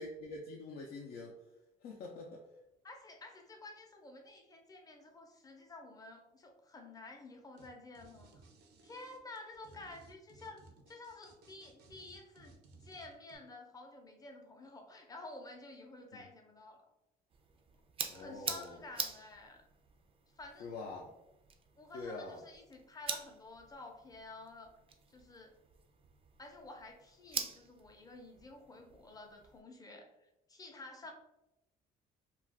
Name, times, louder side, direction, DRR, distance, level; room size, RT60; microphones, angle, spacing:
voice 1, 0.0-1.4 1.8-2.4 16.1-16.2 18.1-18.8 20.6-21.1 21.9-22.4, left 3 dB, 65° left, -1 dB, 0.5 m, -45 dB
voice 2, 2.8-8.3 8.8-12.5 12.8-16.8 18.1-19.6 20.4-20.7 21.8-24.8 25.1-25.5 26.4-30.1 30.5-31.1, left 2 dB, 20° left, 2 dB, 0.6 m, -51 dB
sound 1, 7.6-7.7 7.9-13.4, right 3 dB, 80° right, 0.6 m, -60 dB
sound 2, 17.3-29.6, right 6 dB, 35° right, 0.4 m, -46 dB
2.4 x 2.3 x 3.4 m, 0.89 s
cardioid pair, 110°, 17 cm